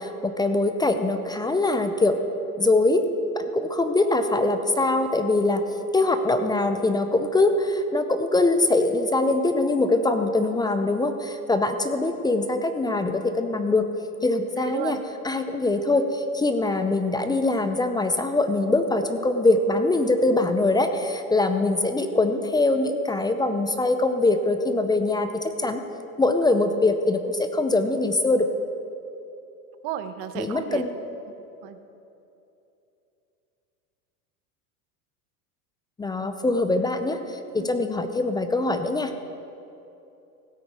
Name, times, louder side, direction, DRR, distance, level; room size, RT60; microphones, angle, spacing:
voice 1, 0.0-2.2 2.6-3.0 3.4-5.6 5.9-13.9 14.2-15.0 15.2-25.3 25.6-25.8 26.2-28.5 30.4-31.0 36.0-39.1, left 2 dB, 10° left, 8 dB, 0.4 m, -23 dB
voice 2, 14.6-15.0 29.8-30.8 31.6-31.8 37.5-37.7, right 11 dB, 50° right, 9 dB, 1.1 m, -33 dB
16.5 x 8.7 x 4.7 m, 2.8 s
hypercardioid pair, 105°, 46 cm